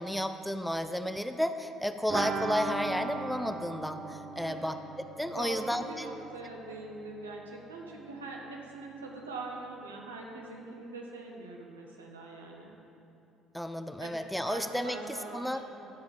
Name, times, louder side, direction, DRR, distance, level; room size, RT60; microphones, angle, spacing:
voice 1, 0.0-4.0 4.4-4.7 5.2-6.2 13.5-15.0 15.3-15.6, equal, ahead, 8 dB, 0.6 m, -32 dB
sound 1, 2.1-7.7 8.0-8.1 8.3-8.4, right 4 dB, 45° right, 1.0 m, -39 dB
voice 2, 5.2-12.7 14.0-14.2 14.4-15.9, right 2 dB, 85° right, -1 dB, 1.2 m, -43 dB
12.5 x 4.9 x 7.2 m, 2.8 s
figure-of-eight pair, 55°, 0 cm